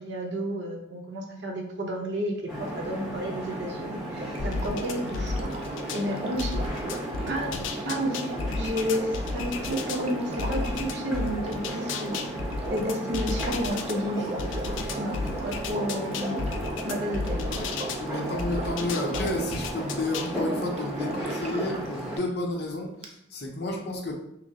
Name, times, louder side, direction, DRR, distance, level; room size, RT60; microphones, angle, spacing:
voice 1, 0.0-5.5 5.9-6.6 7.3-7.5 7.8-8.3 8.5-12.2 12.7-14.5 15.0-16.4 16.8-17.4, equal, 70° right, 2 dB, 0.7 m, -31 dB
sound 1, 2.5-22.2, right 1 dB, ahead, 0.9 m, -35 dB
Sink (filling or washing), 4.0-21.9 23.0-23.1, right 2 dB, 30° right, 0.4 m, -39 dB
sound 2, 4.4-6.0 6.4-10.0 10.4-13.9 14.4-18.0 18.4-20.3, left 3 dB, 90° left, 0.4 m, -33 dB
voice 2, 18.0-24.1, left 1 dB, 60° left, 0 dB, 0.8 m, -31 dB
5.8 x 2.0 x 2.7 m, 0.78 s
head